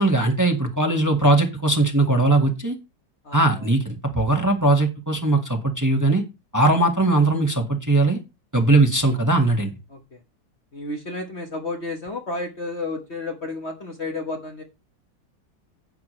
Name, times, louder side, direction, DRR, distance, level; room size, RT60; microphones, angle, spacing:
voice 1, 0.0-2.8 3.3-6.2 6.5-8.2 8.5-9.7, right 2 dB, 10° right, 2 dB, 1.5 m, -19 dB
voice 2, 3.2-3.7 9.1-9.2 9.9-10.2 10.7-14.6, left 2 dB, 40° left, 3 dB, 1.5 m, -32 dB
10.5 x 8.5 x 3.2 m, 0.26 s
omnidirectional pair, 1.9 m